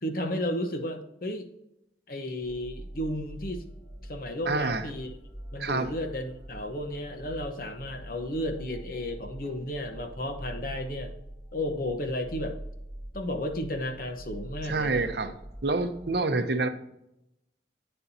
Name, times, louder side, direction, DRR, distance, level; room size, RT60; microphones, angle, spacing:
voice 1, 0.0-1.5 2.1-3.6 4.0-5.1 5.5-11.1 11.5-12.6 13.1-15.1, left 1 dB, 50° left, 6 dB, 0.9 m, -33 dB
sound 1, 2.4-16.2, right 1 dB, 15° right, 2.7 m, -44 dB
voice 2, 4.5-4.8 5.6-5.9 14.7-15.3 15.6-16.7, right 3 dB, 65° right, 8 dB, 0.7 m, -27 dB
9.0 x 6.9 x 2.7 m, 0.84 s
head